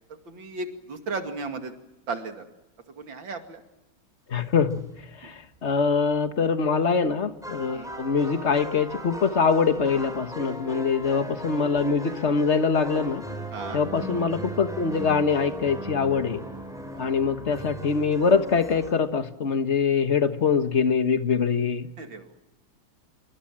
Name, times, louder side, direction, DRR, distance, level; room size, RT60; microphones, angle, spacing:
voice 1, 0.3-1.7 2.1-2.4 3.0-3.6 7.7-7.9 13.5-13.8 16.8-17.1 22.0-22.4, right 3 dB, 70° right, 5 dB, 3.0 m, -35 dB
voice 2, 4.3-4.8 5.2-13.2 13.7-16.4 17.0-21.9, left 5 dB, 35° left, 9 dB, 1.5 m, -24 dB
sound 1, 4.7-5.0 5.5-5.6 7.1-7.2 7.4-18.9, right 1 dB, ahead, 5.9 m, -37 dB
26.5 x 25.0 x 7.5 m, 0.97 s
omnidirectional pair, 2.2 m